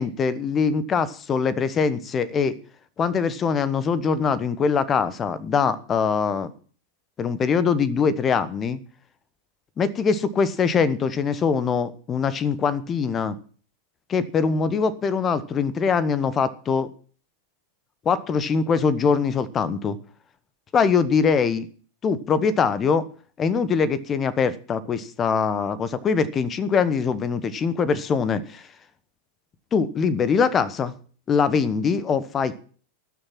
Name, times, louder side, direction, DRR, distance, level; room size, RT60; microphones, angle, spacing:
voice 1, 0.0-2.6 3.0-6.5 7.2-8.8 9.8-13.4 14.1-16.9 18.0-20.0 20.7-21.7 22.0-23.0 23.4-28.7 29.7-30.9 31.3-32.6, left 5 dB, 25° left, 17 dB, 1.1 m, -23 dB
19.0 x 6.6 x 6.0 m, 0.42 s
figure-of-eight pair, 90°, 0 cm